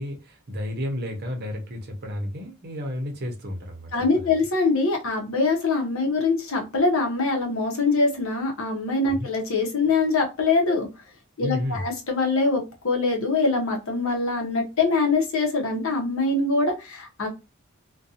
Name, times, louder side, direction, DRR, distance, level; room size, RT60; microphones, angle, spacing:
voice 1, 0.0-4.4 9.1-9.3 11.4-11.8, left 1 dB, 50° right, 0.7 m, -32 dB
voice 2, 3.9-10.9 11.4-17.3, left 3 dB, 70° left, 0.8 m, -23 dB
2.5 x 2.2 x 2.7 m
head